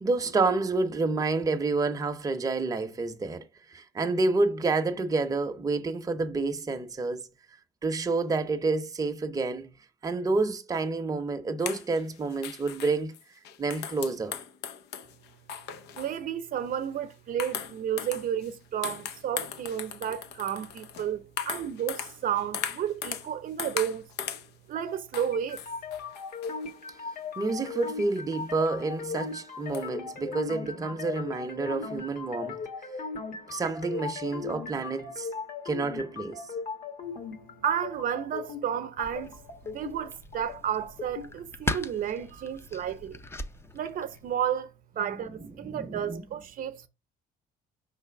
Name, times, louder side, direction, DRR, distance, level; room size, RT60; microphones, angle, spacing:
voice 1, 0.0-7.3 7.8-9.7 10.0-13.1 13.6-14.4 27.4-32.6 33.5-35.3 35.6-36.4 45.0-45.2 45.6-46.2, right 3 dB, 20° right, 0.7 m, -29 dB
sound 1, 11.6-16.2 16.6-16.9 17.4-18.5 18.8-23.3 23.6-24.5 25.1-26.7 27.9-28.0 28.6-28.7 29.1-29.2 29.7-29.8, left 8 dB, 90° left, 0.8 m, -38 dB
voice 2, 16.0-24.1 24.7-25.6 37.6-43.2 43.7-44.7 45.0-46.9, right 9 dB, 55° right, 0.7 m, -32 dB
sound 2, 25.3-41.3, left 5 dB, 55° left, 1.4 m, -38 dB
sound 3, 39.0-44.3, left 2 dB, 15° left, 0.5 m, -39 dB
5.6 x 3.3 x 5.7 m
cardioid pair, 110°, 17 cm